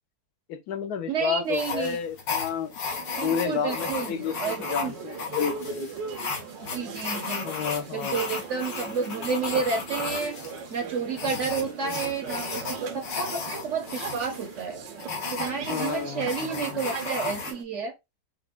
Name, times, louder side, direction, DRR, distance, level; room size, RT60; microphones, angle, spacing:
voice 1, 0.5-2.7 3.2-5.9 7.4-8.3 15.7-16.9, left 7 dB, 70° left, 1.1 m, -31 dB
voice 2, 1.1-2.0 3.2-4.9 6.7-7.5 7.9-10.4 10.7-14.8 15.3-17.9, right 5 dB, 60° right, 0.8 m, -30 dB
sound 1, 1.5-17.5, left 5 dB, 85° left, 1.8 m, -35 dB
sound 2, 2.9-17.6, right 6 dB, 85° right, 1.5 m, -39 dB
5.8 x 2.1 x 2.4 m
omnidirectional pair, 1.9 m